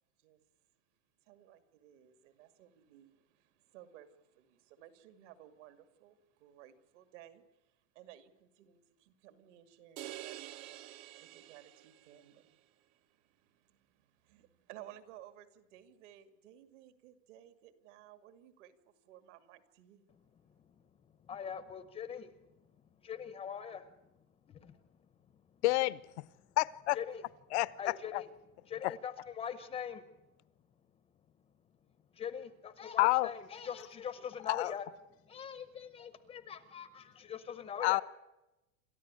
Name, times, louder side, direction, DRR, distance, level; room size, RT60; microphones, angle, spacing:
voice 1, 1.2-20.1, right 12 dB, 60° right, 2.5 m, -57 dB
sound 1, 10.0-12.3, right 14 dB, 35° right, 0.8 m, -47 dB
voice 2, 20.1-25.6 26.4-26.6 26.9-27.2 27.8-28.3 28.7-30.3 30.9-31.0 31.6-34.9 35.2-38.0, left 8 dB, 15° left, 0.7 m, -44 dB
voice 3, 25.6-26.0 26.6-27.0 27.5-27.7 28.1-28.2 28.8-28.9 33.0-33.3 34.5-34.7 37.8-38.0, left 20 dB, 55° left, 0.7 m, -28 dB
28.5 x 13.5 x 9.7 m
supercardioid pair, 170°, 40 cm